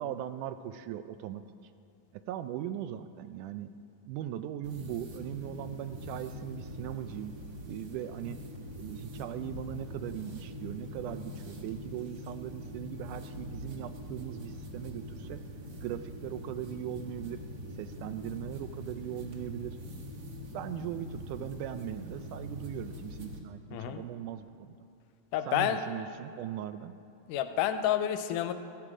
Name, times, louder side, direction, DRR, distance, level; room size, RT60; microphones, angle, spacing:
voice 1, 0.0-1.4 2.1-3.7 4.1-7.3 7.7-8.4 8.8-15.4 15.8-17.4 17.7-19.8 20.5-24.8 25.5-26.9, right 11 dB, 80° right, 10 dB, 1.9 m, -39 dB
sound 1, 4.6-23.4, left 1 dB, 55° right, 1.1 m, -43 dB
voice 2, 23.7-24.0 25.3-25.8 27.3-28.5, left 11 dB, 80° left, 9 dB, 2.1 m, -29 dB
16.0 x 14.5 x 5.0 m, 2.6 s
omnidirectional pair, 3.9 m